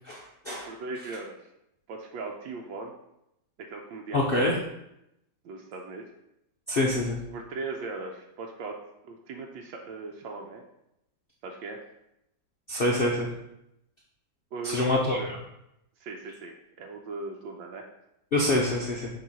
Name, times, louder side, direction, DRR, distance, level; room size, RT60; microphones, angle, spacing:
voice 1, 0.1-0.7 4.1-4.6 6.7-7.2 12.7-13.3 14.6-15.2 18.3-19.1, left 1 dB, 80° left, -2 dB, 0.5 m, -25 dB
voice 2, 0.7-1.5 1.9-2.9 3.7-4.6 5.4-6.1 7.3-8.8 9.0-10.6 11.4-11.8 14.5-15.3 16.0-17.9, right 3 dB, 80° right, 1 dB, 1.4 m, -38 dB
6.8 x 3.1 x 5.4 m, 0.83 s
omnidirectional pair, 2.1 m